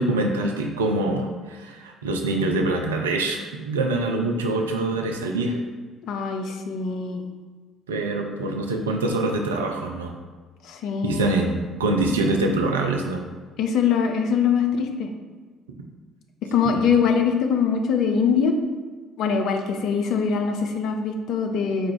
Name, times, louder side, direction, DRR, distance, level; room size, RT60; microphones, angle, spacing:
voice 1, 0.0-5.6 7.9-10.2 11.0-13.3 16.7-16.9, right 2 dB, 80° right, 2 dB, 0.4 m, -25 dB
voice 2, 6.0-7.2 10.6-11.3 13.6-15.1 16.5-18.5 19.2-21.9, left 6 dB, 60° left, 4 dB, 0.5 m, -23 dB
4.5 x 2.5 x 4.6 m, 1.4 s
figure-of-eight pair, 50°, 0 cm